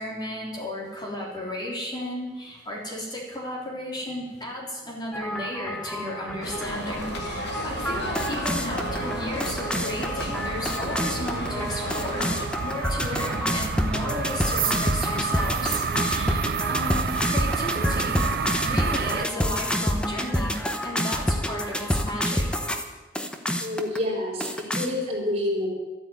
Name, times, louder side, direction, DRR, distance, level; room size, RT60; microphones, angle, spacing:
voice 1, 0.0-12.3 12.6-18.3 18.6-20.6 20.8-22.5, left 1 dB, 25° left, -3 dB, 3.4 m, -34 dB
sound 1, 5.1-22.8 23.2-24.0 24.4-24.9, equal, 5° left, 1.1 m, -28 dB
sound 2, 6.3-19.3, right 6 dB, 60° right, 0.4 m, -31 dB
sound 3, 6.4-12.5, left 2 dB, 75° left, 1.8 m, -35 dB
voice 2, 23.6-25.7, left 1 dB, 35° right, -1 dB, 4.3 m, -28 dB
12.5 x 9.0 x 9.5 m, 1.2 s
head